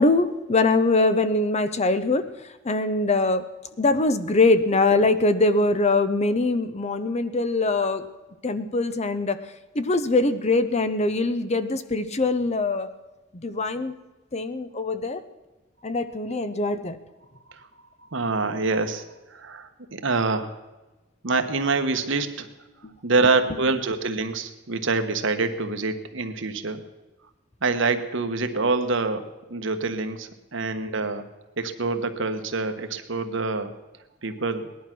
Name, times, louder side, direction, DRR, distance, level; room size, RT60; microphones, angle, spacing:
voice 1, 0.0-2.3 2.6-3.5 3.8-8.0 8.4-9.4 9.7-12.9 13.4-13.9 14.3-15.2 15.8-17.0 22.8-22.9, left 2 dB, 30° left, 11 dB, 0.7 m, -22 dB
voice 2, 18.1-19.0 19.3-20.6 21.2-22.5 23.0-26.8 27.6-31.3 31.6-33.7 34.2-34.7, right 3 dB, 65° right, 8 dB, 1.3 m, -26 dB
18.5 x 11.5 x 6.1 m, 1.1 s
head